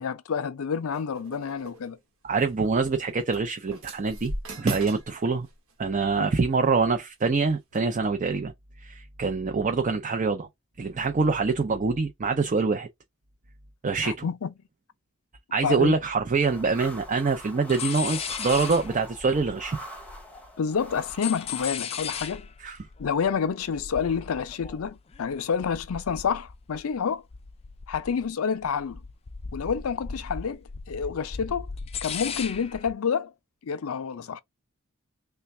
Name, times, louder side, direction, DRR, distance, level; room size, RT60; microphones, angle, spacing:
voice 1, 0.0-2.0 6.2-6.3 14.0-14.5 15.6-15.9 20.6-22.5 23.0-27.2 27.9-29.0 29.5-31.7 32.0-33.3 33.6-34.4, left 6 dB, 85° left, 0.5 m, -29 dB
sound 1, 0.9-1.9 2.8-2.9 3.3-5.1 5.4-5.7 6.6-6.9 7.7-7.8, right 2 dB, 85° right, 1.3 m, -39 dB
voice 2, 2.2-4.3 4.6-5.5 5.8-8.5 8.8-10.5 10.8-12.9 13.8-14.3 15.5-19.8 22.6-22.8, right 4 dB, 35° right, 0.5 m, -25 dB
sound 2, 16.4-21.8, equal, 5° left, 0.8 m, -43 dB
sound 3, 17.1-17.4 17.7-20.5 20.8-27.0 27.3-28.3 28.6-32.9, left 7 dB, 30° left, 0.4 m, -37 dB
3.3 x 2.2 x 4.1 m
head